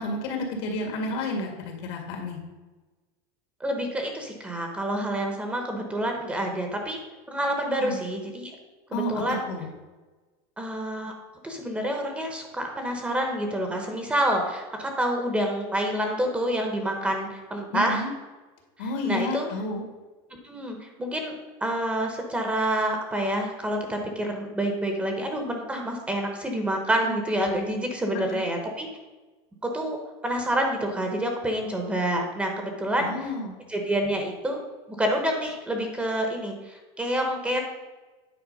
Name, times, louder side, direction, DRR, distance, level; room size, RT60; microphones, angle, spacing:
voice 1, 0.0-2.4 7.8-8.0 8.9-9.7 17.7-18.1 18.8-19.8 27.0-27.1 28.3-28.4 33.0-33.5, left 2 dB, 75° left, 2 dB, 2.0 m, -31 dB
voice 2, 3.6-7.0 7.3-8.5 8.9-9.5 10.6-11.1 11.4-18.0 18.8-19.5 20.4-21.3 21.6-28.9 29.6-33.3 33.7-34.6 35.0-37.6, right 1 dB, 10° right, 3 dB, 0.9 m, -28 dB
9.1 x 4.3 x 5.3 m, 1.2 s
cardioid pair, 165°, 14 cm